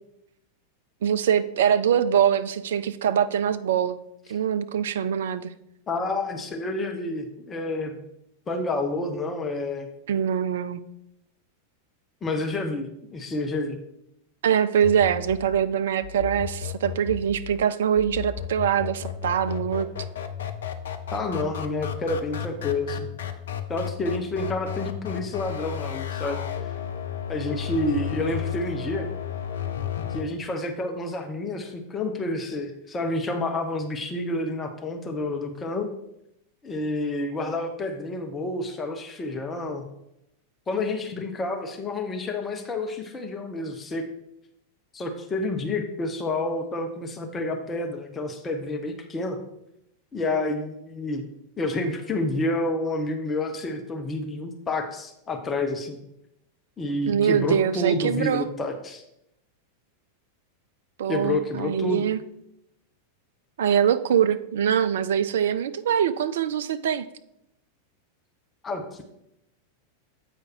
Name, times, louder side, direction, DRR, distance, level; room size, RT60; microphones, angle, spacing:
voice 1, 1.0-4.0 4.3-5.5 10.1-10.8 14.4-19.9 57.1-58.5 61.0-62.2 63.6-67.1, right 8 dB, 60° right, 12 dB, 0.4 m, -23 dB
voice 2, 5.9-8.0 8.5-9.9 12.2-13.8 21.1-23.1 23.7-26.4 27.3-29.1 30.1-35.9 36.6-39.8 40.7-44.0 44.9-49.4 50.1-51.2 51.6-56.0 56.8-59.0 61.1-62.0 68.6-69.0, left 2 dB, 20° left, 4 dB, 0.8 m, -29 dB
sound 1, 14.8-30.2, left 9 dB, 60° left, 0.5 m, -33 dB
8.1 x 4.9 x 4.4 m, 0.81 s
figure-of-eight pair, 90°, 0 cm